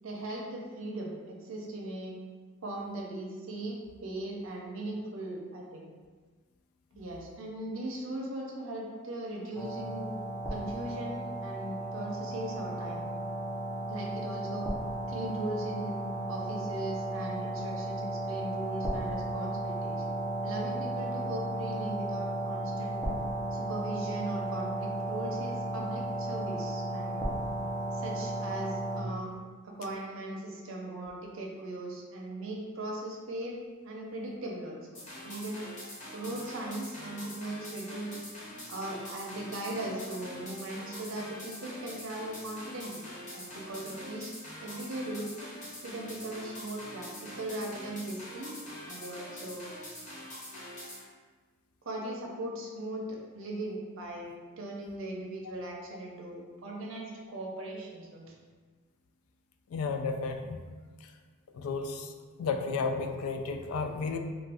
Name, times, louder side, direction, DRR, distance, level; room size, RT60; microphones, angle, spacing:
voice 1, 0.0-2.1 2.6-5.9 6.9-10.1 10.5-13.0 13.9-14.7 15.1-16.0 16.3-20.0 20.4-23.0 23.5-27.3 27.9-29.3 29.6-33.6 33.8-35.7 36.1-38.2 38.7-43.0 43.3-44.3 44.6-45.3 45.8-48.5 48.9-49.7 51.8-58.3, right 1 dB, 70° right, -1 dB, 0.6 m, -39 dB
sound 1, 9.6-29.0, right 1 dB, 10° left, 0.5 m, -34 dB
sound 2, 35.0-51.0, left 1 dB, 35° left, 0.8 m, -44 dB
voice 2, 59.7-60.6 61.5-62.1 62.4-64.2, left 4 dB, 85° left, 6 dB, 0.3 m, -32 dB
2.5 x 2.3 x 3.4 m, 1.4 s
head